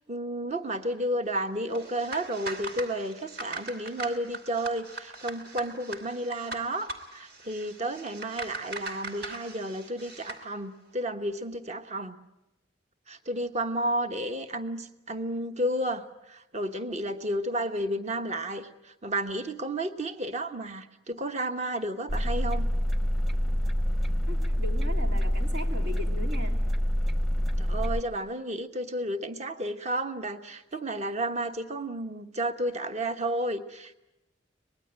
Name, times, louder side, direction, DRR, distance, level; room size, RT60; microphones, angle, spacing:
voice 1, 0.1-12.2 13.1-22.7 27.6-34.0, right 1 dB, 40° right, 8 dB, 1.2 m, -32 dB
sound 1, 1.7-10.5, right 2 dB, 60° right, 2.9 m, -41 dB
sound 2, 22.1-28.0, equal, ahead, 0.8 m, -26 dB
voice 2, 24.3-26.6, left 1 dB, 80° right, 3 dB, 3.5 m, -38 dB
24.5 x 20.0 x 8.8 m, 0.92 s
head